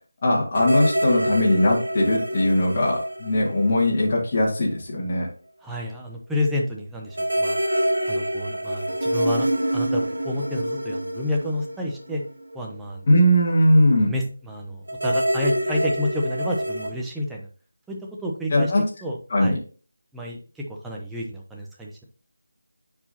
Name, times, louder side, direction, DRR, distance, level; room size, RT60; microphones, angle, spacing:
voice 1, 0.2-5.3 13.1-14.2 18.5-18.8 19.3-19.6, left 1 dB, 30° left, -6 dB, 2.2 m, -20 dB
sound 1, 0.5-4.3 4.6-4.7 7.1-12.6 14.9-16.9, right 1 dB, 70° right, 1.7 m, -26 dB
voice 2, 5.6-7.6 8.1-9.5 9.7-12.2 12.5-13.0 13.9-17.5 17.9-18.7 19.0-19.6 20.1-22.0, left 1 dB, 5° right, -2 dB, 0.9 m, -30 dB
9.7 x 4.7 x 2.8 m, 0.37 s
figure-of-eight pair, 160°, 0 cm